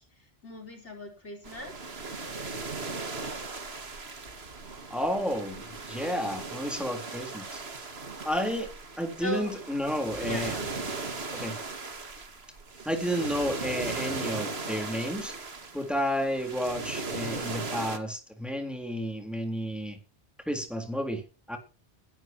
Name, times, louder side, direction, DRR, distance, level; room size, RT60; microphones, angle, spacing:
voice 1, 0.0-1.8 9.2-9.5 10.3-10.8, left 1 dB, 90° left, 1 dB, 4.9 m, -39 dB
sound 1, 1.4-18.0, right 3 dB, 65° right, 2.1 m, -37 dB
voice 2, 4.9-5.6 5.9-7.6 8.2-8.7 9.0-10.5 11.3-11.6 12.9-15.3 15.7-20.0 20.5-21.2 21.5-21.6, equal, ahead, 5 dB, 3.8 m, -31 dB
21.0 x 12.0 x 3.0 m, 0.32 s
omnidirectional pair, 1.1 m